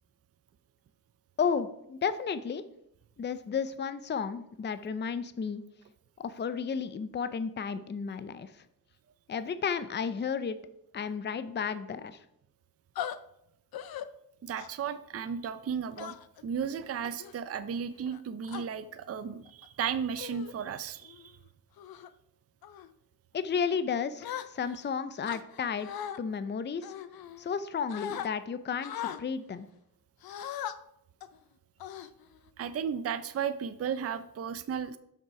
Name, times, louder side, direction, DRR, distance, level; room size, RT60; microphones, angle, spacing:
voice 1, 1.4-2.6 3.2-5.6 6.2-8.5 9.3-10.6 10.9-12.2 23.3-26.9 27.4-29.7, left 6 dB, 30° left, 13 dB, 0.5 m, -33 dB
sound 1, 13.0-13.2 13.7-14.1 14.6-14.9 16.0-16.4 17.0-17.3 18.1-18.6 19.5-19.7 20.2-20.5 21.0-21.3 21.8-22.1 22.6-22.9 24.2-24.8 25.2-26.2 26.8-27.6 27.9-28.3 28.8-29.2 30.2-30.7 31.2-31.4 31.8-32.5, left 10 dB, 70° left, 0.6 m, -39 dB
voice 2, 14.4-16.1 16.4-21.3 32.6-35.0, right 7 dB, 40° right, 11 dB, 0.5 m, -34 dB
6.7 x 6.3 x 4.7 m, 0.78 s
cardioid pair, 90°, 37 cm